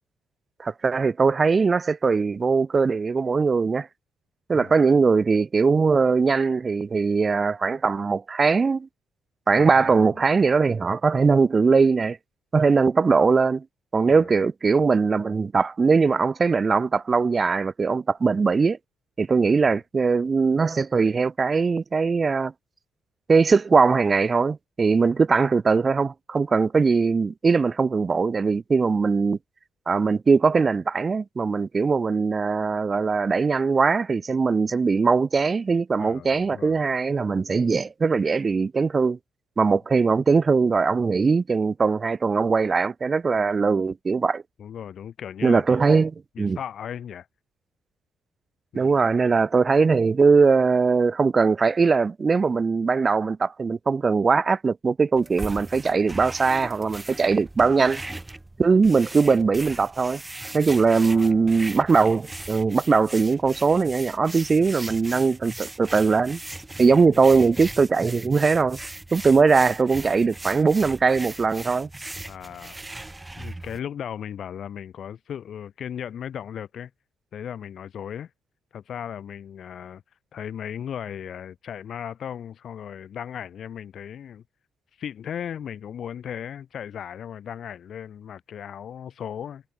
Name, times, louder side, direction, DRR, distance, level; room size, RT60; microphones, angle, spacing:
voice 1, 0.6-3.9 4.5-8.9 9.5-12.2 12.5-13.6 13.9-18.8 19.2-22.5 23.3-29.4 29.9-39.2 39.6-44.4 45.4-46.6 48.7-58.0 58.6-60.2 60.5-66.4 66.8-68.8 69.1-71.9, right 4 dB, 35° right, 0.9 m, -21 dB
voice 2, 9.5-10.2 14.1-14.3 19.4-19.8 36.0-36.8 44.6-45.8 46.4-47.3 48.7-49.0 60.9-61.6 66.9-67.2 72.2-72.8 73.4-76.9 77.3-78.3 78.7-80.0 80.3-84.4 85.0-89.6, left 9 dB, 60° left, 2.4 m, -37 dB
sound 1, 55.2-73.8, right 2 dB, 15° right, 3.2 m, -39 dB
cardioid pair, 90°, 0 cm